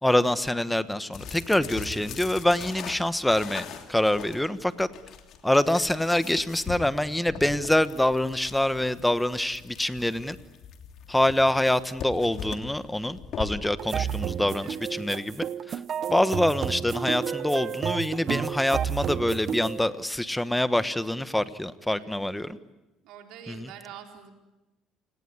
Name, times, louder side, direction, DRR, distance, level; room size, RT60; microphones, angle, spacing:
voice 1, 0.0-4.9 5.4-10.4 11.1-15.8 16.1-22.6 23.5-23.7, left 1 dB, 5° left, 13 dB, 1.3 m, -25 dB
sound 1, 1.1-13.7, left 7 dB, 60° left, 2.9 m, -41 dB
sound 2, 13.8-19.9, right 8 dB, 50° right, 0.9 m, -31 dB
voice 2, 14.5-14.9 21.8-22.6 23.0-24.3, right 8 dB, 75° right, 3 dB, 4.3 m, -47 dB
29.0 x 18.5 x 9.7 m, 1.0 s
cardioid pair, 100°, 0 cm